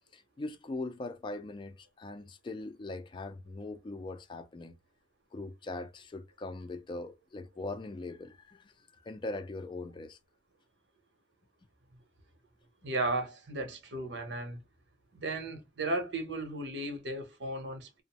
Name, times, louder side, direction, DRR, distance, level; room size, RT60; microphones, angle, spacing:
voice 1, 0.1-4.8 5.3-8.7 9.0-10.2, left 2 dB, 25° left, 0.3 m, -41 dB
voice 2, 12.8-14.6 15.1-18.0, right 2 dB, 85° right, 0.9 m, -35 dB
2.5 x 2.1 x 2.9 m
head